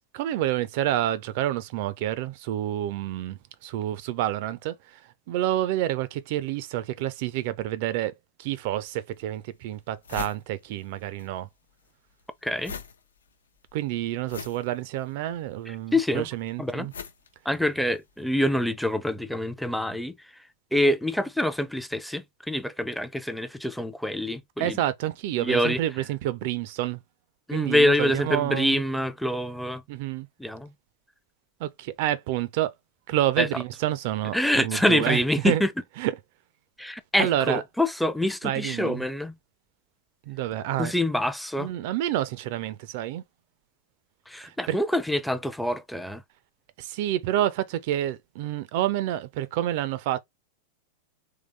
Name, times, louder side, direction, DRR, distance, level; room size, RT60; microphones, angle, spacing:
voice 1, 0.1-8.1 8.4-11.5 13.7-16.9 24.6-27.0 27.5-28.8 29.9-30.3 31.6-32.7 33.1-35.6 36.0-36.1 37.2-37.6 38.4-39.0 40.3-40.9 41.6-43.2 44.4-44.8 46.8-50.2, right 13 dB, 50° right, 0.4 m, -28 dB
sound 1, 8.8-8.9 9.4-9.5 9.7-11.3 11.5-18.1, left 6 dB, 70° left, 0.7 m, -42 dB
voice 2, 12.4-12.7 15.7-16.3 16.6-16.9 17.4-20.2 20.7-24.8 25.3-25.8 27.5-29.8 30.4-30.7 33.4-33.5 34.3-35.7 36.8-39.3 40.8-41.7 44.3-46.2, left 1 dB, ahead, 0.5 m, -26 dB
3.7 x 3.2 x 3.3 m
figure-of-eight pair, 90°, 0 cm